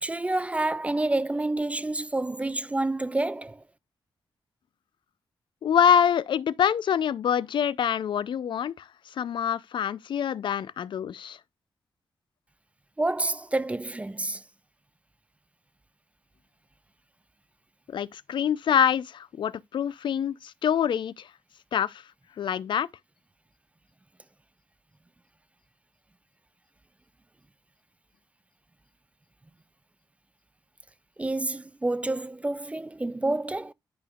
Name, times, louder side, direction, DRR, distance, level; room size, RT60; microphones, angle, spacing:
voice 1, 0.0-3.6 13.0-14.4 31.2-33.7, right 2 dB, 15° right, 0.4 m, -28 dB
voice 2, 5.6-8.8 9.2-11.4 17.9-21.3 21.7-22.0 22.4-22.9, left 8 dB, 65° left, 0.4 m, -25 dB
11.0 x 5.1 x 2.3 m
cardioid pair, 95°, 9 cm